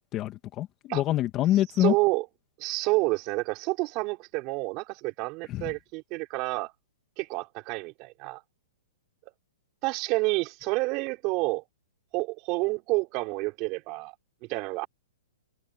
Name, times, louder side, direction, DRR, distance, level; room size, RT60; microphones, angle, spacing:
voice 1, 0.1-1.9 5.5-5.7, left 13 dB, 25° left, 2.1 m, -26 dB
voice 2, 1.8-2.3 2.6-6.7 7.2-8.4 9.8-11.6 12.1-14.1 14.5-14.9, right 24 dB, 35° right, 4.0 m, -29 dB
hypercardioid pair, 150°, 0 cm